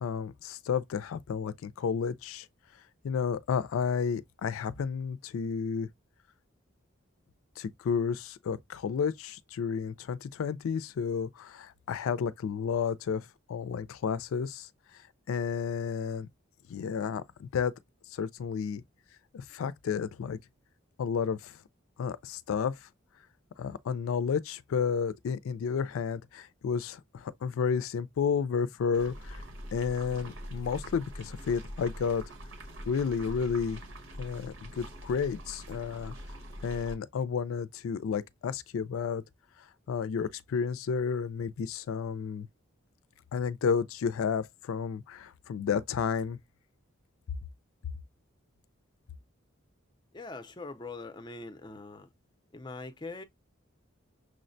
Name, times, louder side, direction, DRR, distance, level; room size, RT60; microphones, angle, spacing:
voice 1, 0.0-2.5 3.0-5.9 7.6-14.7 15.3-16.3 16.7-17.7 18.1-18.8 19.3-20.4 21.0-21.5 22.0-22.7 23.6-29.4 29.7-32.2 32.9-33.8 34.2-36.1 36.6-39.2 39.9-42.5 43.3-46.4, left 6 dB, 80° left, 0.3 m, -31 dB
sound 1, 28.9-36.9, equal, 70° right, 1.2 m, -44 dB
voice 2, 50.1-52.1 52.5-53.2, left 3 dB, 20° left, 0.4 m, -42 dB
6.2 x 2.1 x 2.5 m
head